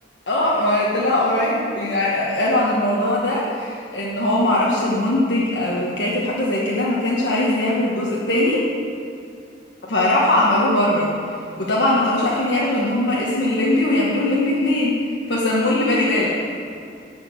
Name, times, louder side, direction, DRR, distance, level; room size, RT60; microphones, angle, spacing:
voice 1, 0.3-8.7 9.8-11.1 11.6-15.0 15.3-16.4, left 1 dB, 70° left, -5 dB, 1.4 m, -20 dB
11.0 x 5.1 x 7.8 m, 2.5 s
head